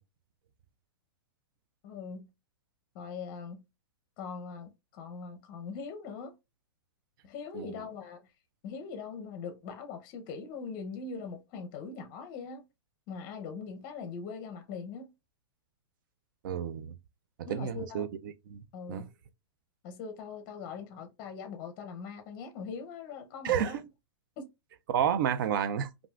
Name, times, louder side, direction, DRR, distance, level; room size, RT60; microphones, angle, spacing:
voice 1, 1.8-2.3 2.9-3.6 4.2-6.3 7.2-8.2 8.6-12.6 13.1-15.1 17.5-18.1 18.7-19.1 19.8-23.9 24.4-24.5, left 5 dB, 30° left, 0.6 m, -41 dB
voice 2, 7.5-7.9 16.4-16.9 17.5-18.6 18.9-19.1 23.4-23.8 24.9-25.9, right 9 dB, 50° right, 0.4 m, -30 dB
3.4 x 2.4 x 2.3 m
hypercardioid pair, 155°, 14 cm